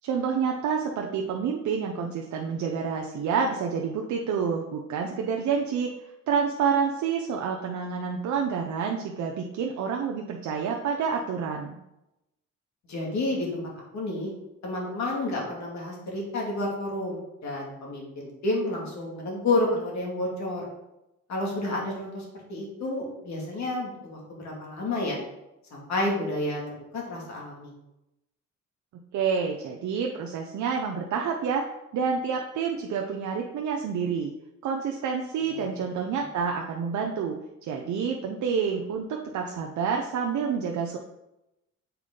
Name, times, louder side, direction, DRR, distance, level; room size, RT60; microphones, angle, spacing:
voice 1, 0.0-5.9 6.3-11.8 29.1-31.6 31.9-34.3 34.6-41.0, right 6 dB, 70° right, 1 dB, 0.7 m, -28 dB
voice 2, 12.9-13.6 13.9-14.3 14.6-20.7 21.3-25.2 25.7-27.7 35.5-35.7, left 2 dB, 65° left, -2 dB, 2.4 m, -30 dB
7.0 x 4.3 x 3.8 m, 0.90 s
cardioid pair, 90°, 30 cm